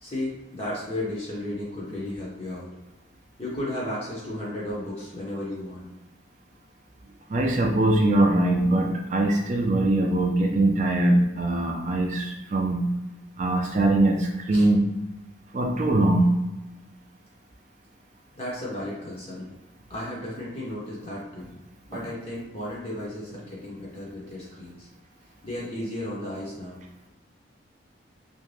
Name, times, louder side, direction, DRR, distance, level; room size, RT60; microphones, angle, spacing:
voice 1, 0.0-2.7 3.4-5.9 14.5-14.7 18.4-19.5 19.9-21.5 21.9-24.9 25.4-26.8, left 1 dB, 30° left, -6 dB, 0.6 m, -34 dB
voice 2, 7.3-12.9 13.4-14.9 15.5-16.3, right 1 dB, 40° right, 1 dB, 0.4 m, -22 dB
2.5 x 2.2 x 3.2 m, 1.1 s
head